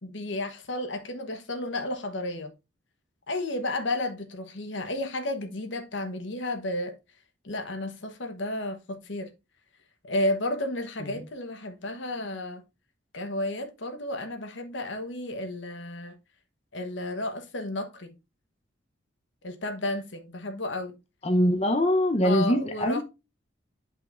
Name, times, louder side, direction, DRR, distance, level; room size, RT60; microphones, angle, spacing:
voice 1, 0.0-2.5 3.3-6.9 7.4-9.3 10.0-12.6 13.1-16.2 16.7-18.1 19.4-21.0 22.2-23.0, left 1 dB, 70° left, 1.1 m, -32 dB
voice 2, 21.2-23.0, equal, 30° left, 0.8 m, -23 dB
9.1 x 5.5 x 2.5 m
head